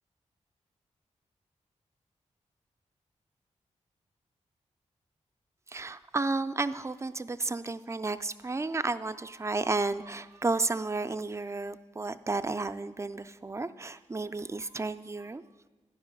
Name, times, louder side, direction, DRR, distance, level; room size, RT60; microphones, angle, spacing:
voice 1, 5.7-15.4, right 3 dB, 25° right, 12 dB, 0.4 m, -32 dB
10.5 x 5.4 x 5.2 m, 1.2 s
cardioid pair, 55°, 12 cm